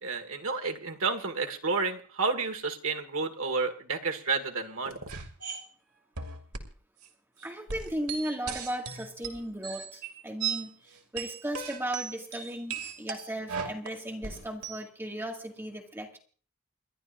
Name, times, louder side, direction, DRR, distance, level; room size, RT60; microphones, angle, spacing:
voice 1, 0.0-5.2, right 4 dB, 70° right, 5 dB, 1.9 m, -31 dB
sound 1, 5.1-5.6 6.2-6.7 7.0-7.1 7.4-10.7 11.0-14.8, right 6 dB, 85° right, 2.5 m, -37 dB
voice 2, 7.4-16.2, right 1 dB, 10° right, 1 dB, 2.1 m, -36 dB
29.5 x 11.5 x 2.6 m, 0.43 s
head